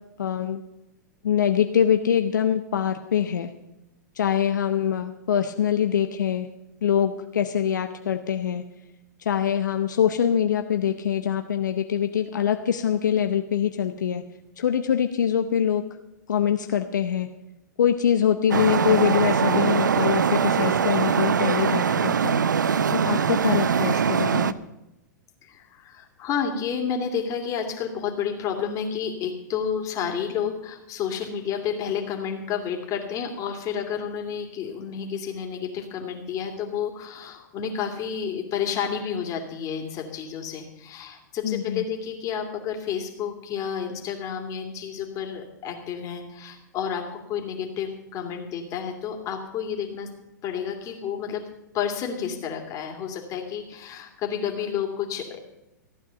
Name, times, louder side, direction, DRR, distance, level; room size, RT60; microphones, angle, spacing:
voice 1, 0.2-0.6 1.2-3.5 4.2-6.5 6.8-8.6 9.2-14.2 14.6-15.8 16.3-17.3 17.8-22.4 22.9-24.6 41.4-41.9, left 9 dB, 75° left, 7 dB, 0.8 m, -24 dB
Traffic noise roadway noise, 18.5-24.5, right 7 dB, 85° right, 0.6 m, -22 dB
voice 2, 25.4-50.1 50.4-51.4 51.7-55.4, left 7 dB, 35° left, 3 dB, 2.6 m, -30 dB
14.5 x 9.4 x 6.9 m, 0.93 s
hypercardioid pair, 110°, 10 cm